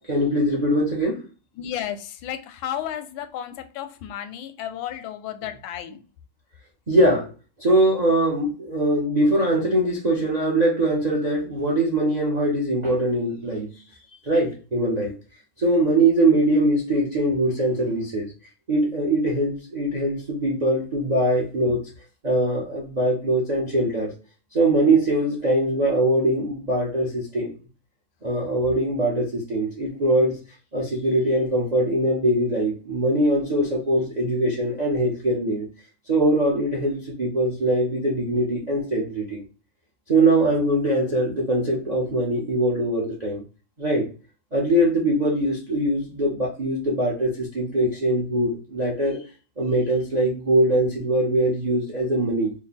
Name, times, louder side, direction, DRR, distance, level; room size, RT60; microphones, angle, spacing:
voice 1, 0.1-1.2 6.9-7.3 7.6-13.7 14.2-15.1 15.6-18.3 18.7-21.9 22.2-24.1 24.5-27.5 28.2-30.4 30.7-35.7 36.1-39.4 40.1-43.4 43.8-44.1 44.5-49.2 49.6-52.5, right 1 dB, 50° right, 0.5 m, -22 dB
voice 2, 1.6-6.0, left 10 dB, 90° left, 1.4 m, -33 dB
3.4 x 2.2 x 4.0 m
omnidirectional pair, 2.1 m